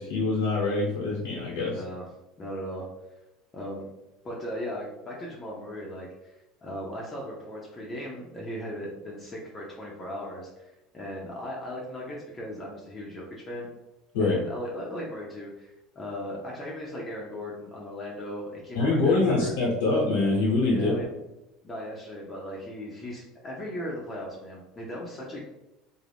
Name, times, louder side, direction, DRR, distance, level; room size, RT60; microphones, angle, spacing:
voice 1, 0.0-1.8 14.1-14.4 18.7-20.9, left 3 dB, 90° left, -6 dB, 0.8 m, -24 dB
voice 2, 1.7-2.1 2.4-2.9 3.5-3.9 4.2-13.7 14.2-19.5 20.6-21.2 21.6-25.4, equal, 25° left, -3 dB, 0.6 m, -37 dB
2.4 x 2.0 x 3.3 m, 0.96 s
supercardioid pair, 105°, 0 cm